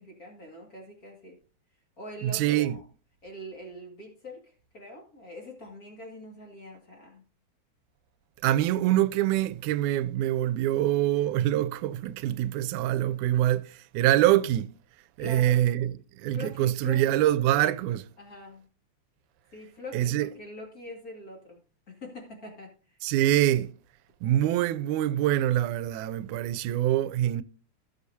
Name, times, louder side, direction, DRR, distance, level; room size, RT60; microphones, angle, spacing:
voice 1, 0.0-1.4 2.0-2.8 3.2-7.2 15.2-15.6 16.3-17.2 18.2-18.7 19.5-21.6 21.9-23.0, left 1 dB, 35° left, 2.1 m, -43 dB
voice 2, 2.2-2.8 8.4-14.7 15.2-18.1 19.9-20.3 23.0-23.7 24.2-27.4, right 13 dB, 90° right, 2.0 m, -25 dB
16.5 x 6.8 x 2.7 m
omnidirectional pair, 3.4 m